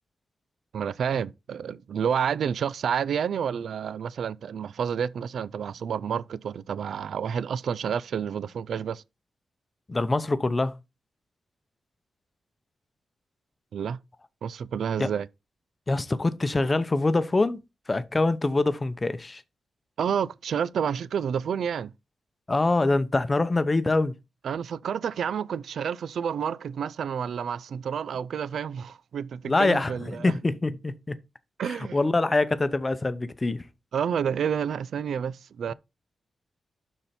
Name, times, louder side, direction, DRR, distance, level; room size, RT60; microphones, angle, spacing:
voice 1, 0.7-9.0 13.7-14.0 14.4-15.3 20.0-21.9 24.4-30.3 31.6-32.0 33.9-35.7, right 7 dB, 80° right, 0.4 m, -29 dB
voice 2, 9.9-10.8 15.0-15.1 15.9-19.4 22.5-24.1 29.5-31.2 31.6-33.7, left 2 dB, 20° left, 0.7 m, -25 dB
12.0 x 4.4 x 4.3 m
wide cardioid pair, 165°, 0 cm